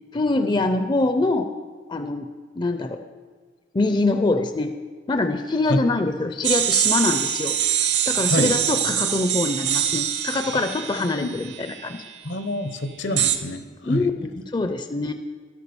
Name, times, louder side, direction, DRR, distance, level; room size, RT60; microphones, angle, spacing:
voice 1, 0.1-1.5 1.9-2.3 2.6-3.0 3.7-4.7 5.1-7.6 8.1-12.0 13.8-15.1, left 2 dB, 25° left, 8 dB, 0.4 m, -24 dB
sound 1, 6.4-12.1 13.2-13.4, right 10 dB, 65° right, 0.8 m, -24 dB
voice 2, 8.3-8.6 11.2-11.3 12.2-14.1, left 1 dB, 70° left, 9 dB, 0.9 m, -26 dB
12.0 x 8.3 x 6.9 m, 1.5 s
head